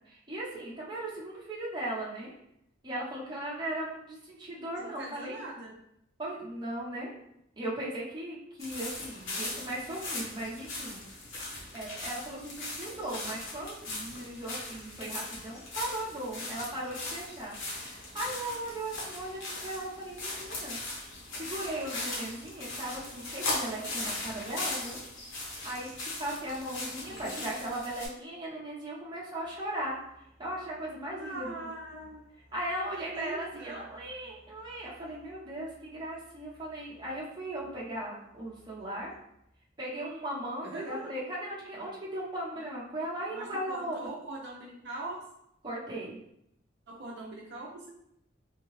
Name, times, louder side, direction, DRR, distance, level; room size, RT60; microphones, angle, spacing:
voice 1, 0.1-2.3 2.8-5.4 6.2-7.1 7.6-11.0 11.7-20.8 21.4-25.0 25.6-30.0 30.4-31.6 32.5-39.1 39.8-44.0 45.6-46.2, right 1 dB, 25° right, -6 dB, 0.9 m, -37 dB
voice 2, 4.8-5.7 27.1-27.5 31.2-32.3 32.9-33.8 40.6-41.1 43.3-45.3 46.9-47.9, right 2 dB, 60° right, -2 dB, 0.6 m, -42 dB
sound 1, 8.6-28.1, left 2 dB, 85° left, 1.0 m, -39 dB
Musical instrument, 29.4-39.5, equal, 5° right, 0.8 m, -62 dB
3.5 x 2.2 x 3.1 m, 0.76 s
head